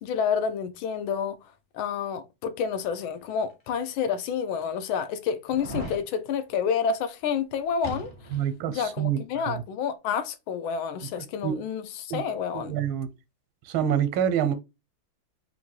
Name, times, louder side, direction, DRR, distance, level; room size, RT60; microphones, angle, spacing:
voice 1, 0.0-1.4 1.7-8.1 8.7-12.8, left 7 dB, 80° left, 1.4 m, -29 dB
sound 1, 3.5-3.6 4.3-4.4 5.5-6.0 7.8-8.5 8.8-8.9, right 1 dB, 30° left, 0.6 m, -37 dB
voice 2, 8.3-9.6 11.4-11.6 12.1-12.2 12.5-13.1 13.7-14.5, right 9 dB, 85° right, 1.5 m, -27 dB
3.6 x 2.7 x 4.3 m
omnidirectional pair, 2.3 m